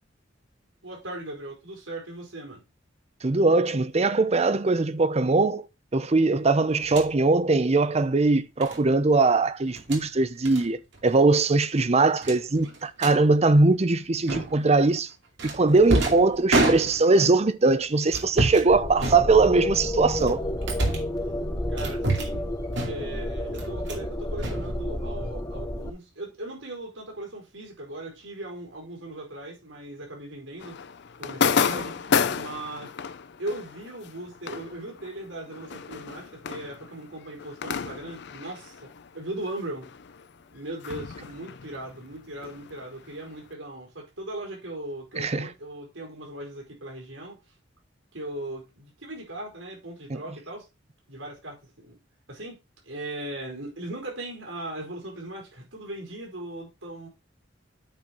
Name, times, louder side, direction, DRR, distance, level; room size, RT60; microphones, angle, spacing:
voice 1, 0.8-2.6 21.7-22.5 22.8-30.8 31.2-32.9 33.4-39.9 40.5-47.4 48.1-50.7 51.1-52.0 52.3-52.6 52.8-57.1, right 1 dB, 85° right, 4.5 m, -38 dB
voice 2, 3.2-5.7 5.9-15.1 15.4-20.5 45.2-45.5 50.1-50.2, right 3 dB, 35° right, 0.6 m, -21 dB
sound 1, 6.8-7.1 8.6-8.8 9.7-10.0 10.4-10.6 10.9-11.1 11.4-11.5 12.2-13.2 14.3-14.7 15.4-17.3 18.1-18.7 19.0-19.7 20.2-21.2 21.8-22.4 22.7-23.2 23.5-24.1 24.4-25.2, right 2 dB, 65° right, 2.4 m, -28 dB
sound 2, 18.7-25.9, left 1 dB, 20° left, 1.1 m, -31 dB
sound 3, 30.6-39.6 39.8-43.4, left 6 dB, 60° left, 0.5 m, -31 dB
8.9 x 4.3 x 5.1 m
head